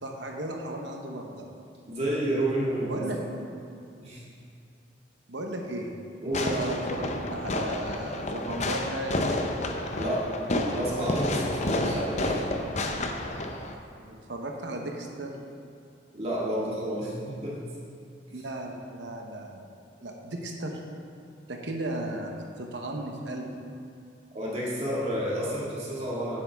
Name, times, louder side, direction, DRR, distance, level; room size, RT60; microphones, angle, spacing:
voice 1, 0.0-1.5 2.8-3.2 5.3-5.9 6.2-7.0 7.3-9.2 13.7-15.3 18.3-19.7 20.0-20.8 21.5-23.5, right 1 dB, 70° right, 2 dB, 1.0 m, -35 dB
voice 2, 1.8-3.2 4.0-4.2 6.2-6.5 10.0-10.3 10.7-12.4 16.1-17.6 24.3-26.4, right 1 dB, 35° right, -6 dB, 2.1 m, -30 dB
Fireworks, 6.3-13.7, left 1 dB, 40° left, 0.6 m, -30 dB
10.0 x 7.7 x 3.6 m, 2.4 s
head